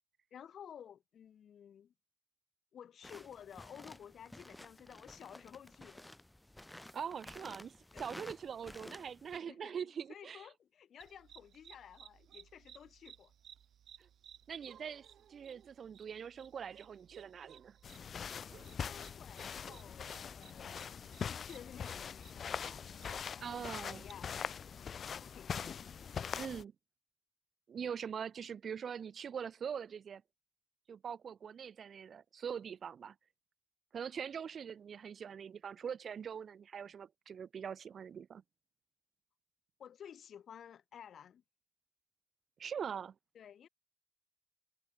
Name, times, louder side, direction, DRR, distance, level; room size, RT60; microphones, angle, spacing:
voice 1, 0.3-1.9 2.7-6.1 7.9-8.1 9.5-9.8 10.1-13.3 18.7-20.9 21.3-22.8 23.3-24.3 24.9-25.8 39.8-41.4 43.4-43.7, left 9 dB, 80° left, 5.1 m, -54 dB
sound 1, 3.0-9.4, left 1 dB, 10° left, 4.0 m, -53 dB
voice 2, 6.9-10.5 14.0-14.1 14.5-17.8 23.4-24.0 26.4-26.7 27.7-30.2 30.9-33.1 33.9-38.4 42.6-43.1, right 7 dB, 65° right, 0.7 m, -43 dB
sound 2, 11.0-23.2, right 9 dB, 90° right, 1.8 m, -60 dB
sound 3, 17.8-26.6, left 7 dB, 60° left, 0.8 m, -42 dB
wide cardioid pair, 125°, 0 cm